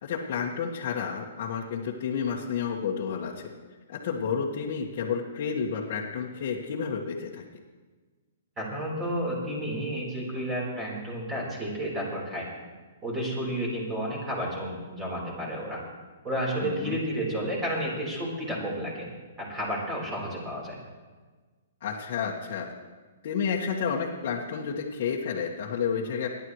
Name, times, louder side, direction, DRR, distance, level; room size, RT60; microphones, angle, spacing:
voice 1, 0.0-3.5 3.9-7.4 16.6-17.0 21.8-22.7 23.2-26.3, left 6 dB, 55° left, -5 dB, 1.7 m, -30 dB
voice 2, 8.6-12.5 13.0-15.8 16.2-19.1 19.4-20.8, equal, 15° right, -4 dB, 4.2 m, -31 dB
29.5 x 11.0 x 3.3 m, 1.4 s
hypercardioid pair, 150°, 0 cm